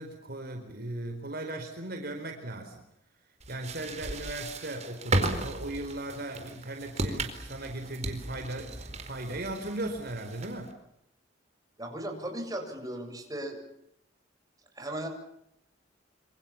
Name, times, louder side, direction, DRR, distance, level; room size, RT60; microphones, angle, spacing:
voice 1, 0.0-2.8 3.5-10.7, right 1 dB, 50° right, 4 dB, 4.5 m, -37 dB
sound 1, 3.4-10.7, right 2 dB, 35° right, 4.4 m, -35 dB
voice 2, 11.8-13.6 14.8-15.1, right 1 dB, 20° right, 3 dB, 7.4 m, -36 dB
27.0 x 27.0 x 7.3 m, 0.77 s
head